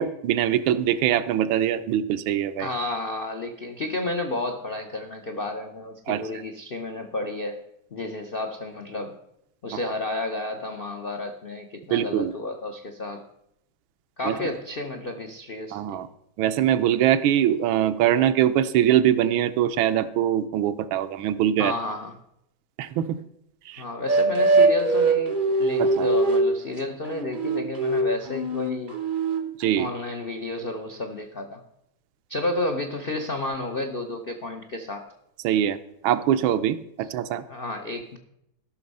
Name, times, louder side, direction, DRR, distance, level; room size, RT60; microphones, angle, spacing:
voice 1, 0.0-2.7 6.1-6.3 11.9-12.3 14.2-14.4 15.7-16.1 16.4-21.7 22.8-23.2 23.7-23.8 25.8-26.1 29.6-29.9 35.4-35.8 36.0-37.4, right 11 dB, 85° right, 11 dB, 1.4 m, -23 dB
voice 2, 2.6-7.6 7.9-9.2 9.6-13.2 14.2-16.0 21.6-22.1 23.8-29.0 29.8-31.6 32.3-35.1 37.5-38.2, left 2 dB, 80° left, 4 dB, 0.5 m, -31 dB
sound 1, 24.1-26.6 27.1-29.8, right 3 dB, 60° right, 0.5 m, -22 dB
13.0 x 6.0 x 5.3 m, 0.78 s
omnidirectional pair, 2.2 m